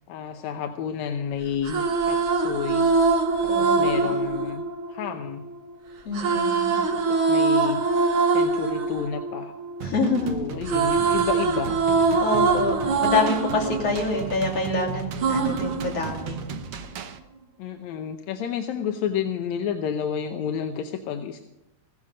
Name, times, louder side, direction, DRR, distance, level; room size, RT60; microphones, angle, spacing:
voice 1, 0.1-2.9 3.4-4.6 4.9-5.5 6.9-9.5 10.2-11.8 17.6-21.4, left 8 dB, 70° left, 5 dB, 1.9 m, -31 dB
sound 1, 1.5-5.5 6.1-10.2 10.5-14.7 15.2-16.6, right 4 dB, 50° right, 2.1 m, -23 dB
voice 2, 3.5-4.1 6.1-6.8 9.8-10.4 12.2-16.4, left 3 dB, 45° left, -1 dB, 3.8 m, -26 dB
sound 2, 9.8-17.2, right 6 dB, 65° right, 1.6 m, -36 dB
16.0 x 12.5 x 5.1 m, 0.87 s
omnidirectional pair, 3.9 m